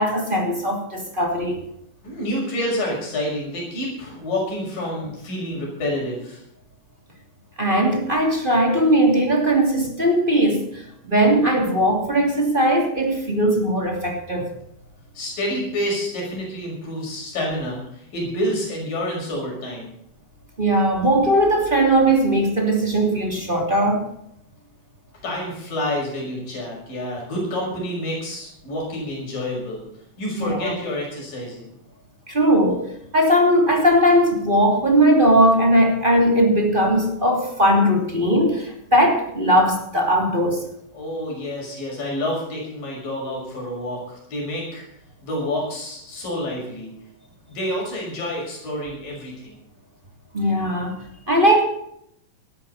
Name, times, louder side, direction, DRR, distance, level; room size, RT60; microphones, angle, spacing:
voice 1, 0.0-1.6 7.6-14.5 20.6-24.1 30.4-30.7 32.3-40.6 50.3-50.9 51.3-51.6, right 1 dB, 15° right, 2 dB, 2.5 m, -19 dB
voice 2, 2.0-6.4 15.2-19.9 25.2-29.8 30.2-31.6 40.9-44.8 45.2-46.9 47.5-49.5, left 1 dB, 80° left, -2 dB, 7.8 m, -28 dB
19.0 x 13.0 x 4.2 m, 0.74 s
omnidirectional pair, 3.9 m